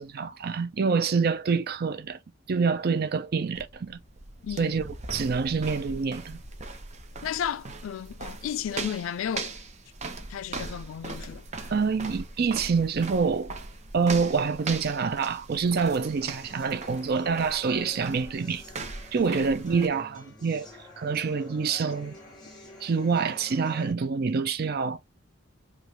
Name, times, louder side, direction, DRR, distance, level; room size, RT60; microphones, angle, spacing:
voice 1, 0.0-2.2 2.5-4.0 4.6-6.4 11.7-13.5 13.9-18.6 19.1-20.7 21.0-22.2 22.8-25.0, right 5 dB, 50° right, 0.5 m, -26 dB
sound 1, 3.6-19.9, right 3 dB, 35° right, 0.8 m, -40 dB
voice 2, 4.4-4.8 7.2-9.5 10.3-11.7 19.2-19.5, left 9 dB, 75° left, 0.4 m, -34 dB
sound 2, 15.9-23.9, left 2 dB, 20° left, 1.7 m, -48 dB
5.1 x 2.4 x 2.9 m
head